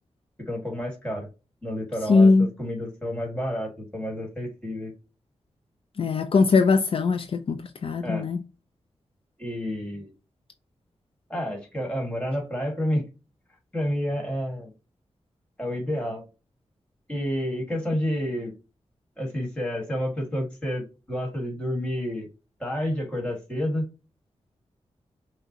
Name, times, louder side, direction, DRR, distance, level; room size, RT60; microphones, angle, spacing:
voice 1, 0.4-1.3 1.6-4.9 8.0-8.3 9.4-10.1 11.3-13.0 13.7-14.7 15.6-16.2 17.1-18.5 19.2-22.3 22.6-23.9, equal, 10° left, 1.8 m, -29 dB
voice 2, 2.1-2.5 6.0-8.4, left 4 dB, 55° left, 0.4 m, -20 dB
5.8 x 2.1 x 2.8 m
wide cardioid pair, 105°, 11 cm